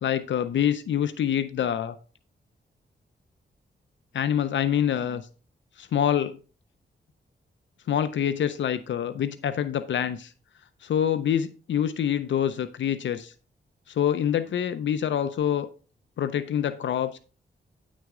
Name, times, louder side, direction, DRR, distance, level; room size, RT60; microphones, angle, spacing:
voice 1, 0.0-1.9 4.1-5.2 5.8-6.4 7.9-10.3 10.8-13.3 13.9-15.7 16.2-17.2, left 9 dB, 75° left, 11 dB, 0.5 m, -26 dB
9.1 x 6.2 x 3.6 m, 0.36 s
wide cardioid pair, 170°, 20 cm